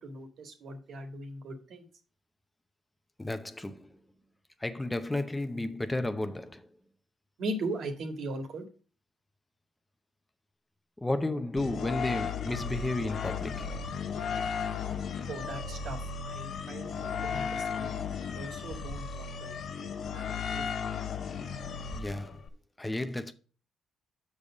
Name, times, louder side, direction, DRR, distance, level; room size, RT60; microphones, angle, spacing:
voice 1, 0.0-1.8 7.4-8.6 15.3-16.0 16.3-20.3 20.5-20.6, right 2 dB, 65° right, 1.9 m, -39 dB
voice 2, 3.2-4.0 4.6-6.7 11.0-13.8 21.9-22.4 22.8-23.3, left 2 dB, 15° left, 0.8 m, -33 dB
sound 1, 11.6-22.5, left 6 dB, 60° left, 0.8 m, -35 dB
6.6 x 5.3 x 6.2 m
supercardioid pair, 70°, 0 cm